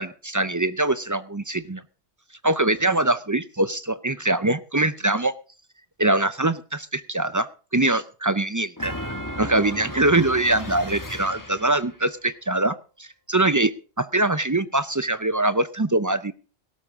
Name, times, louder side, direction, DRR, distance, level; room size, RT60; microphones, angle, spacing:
voice 1, 0.0-1.8 2.4-5.3 6.0-8.9 9.4-13.7 14.0-16.3, right 2 dB, 25° right, 13 dB, 0.4 m, -23 dB
sound 1, 8.8-12.0, left 1 dB, 15° left, 1.3 m, -35 dB
17.0 x 13.0 x 3.6 m, 0.36 s
omnidirectional pair, 1.2 m